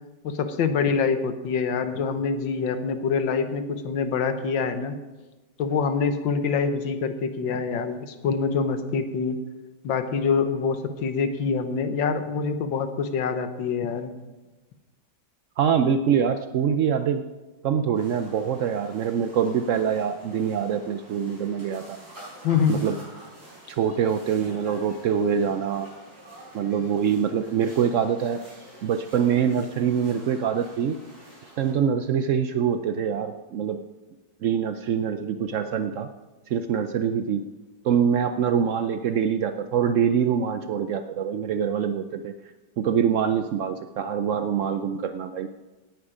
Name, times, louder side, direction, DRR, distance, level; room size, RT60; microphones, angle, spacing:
voice 1, 0.2-5.0 5.6-9.4 9.8-14.1 22.4-22.8, left 5 dB, 85° left, 9 dB, 1.8 m, -25 dB
voice 2, 15.6-17.3 17.6-22.0 22.7-23.0 23.7-25.9 26.5-28.4 28.8-31.0 31.6-33.8 34.4-36.1 36.5-37.5 37.8-42.3 42.8-45.5, right 7 dB, 80° right, 8 dB, 0.6 m, -24 dB
sound 1, 17.9-31.7, right 1 dB, 55° right, 5.9 m, -48 dB
17.5 x 9.3 x 5.0 m, 1.2 s
omnidirectional pair, 2.0 m